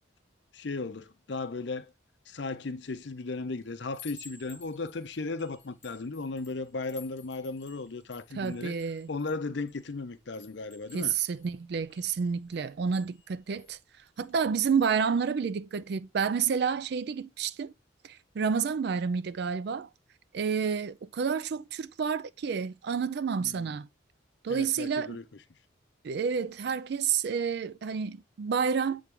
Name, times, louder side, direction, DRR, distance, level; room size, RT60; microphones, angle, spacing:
voice 1, 0.5-1.9 2.3-8.8 9.1-11.1 23.4-23.7 24.5-25.2, left 3 dB, 60° left, 0.6 m, -36 dB
Chime, 2.9-3.2 3.6-9.9 10.3-13.7 14.2-14.4 14.7-15.0, left 5 dB, 35° left, 1.3 m, -55 dB
voice 2, 8.3-9.1 10.9-13.8 14.2-17.7 18.0-19.9 20.3-23.9 24.4-25.2 26.0-29.0, right 6 dB, 55° right, 0.3 m, -29 dB
8.2 x 3.5 x 3.6 m
head